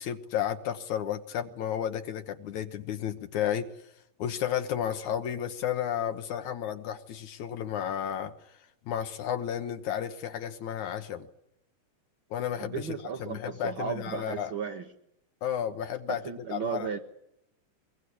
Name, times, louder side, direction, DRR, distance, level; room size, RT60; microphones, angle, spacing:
voice 1, 0.0-3.7 4.2-8.3 8.9-11.3 12.3-12.9 13.2-14.5 15.4-16.2 16.5-16.9, left 9 dB, 70° left, 8 dB, 2.3 m, -32 dB
voice 2, 12.6-14.9 16.1-17.0, right 7 dB, 55° right, 4 dB, 1.5 m, -35 dB
22.5 x 22.5 x 8.4 m, 0.82 s
omnidirectional pair, 3.9 m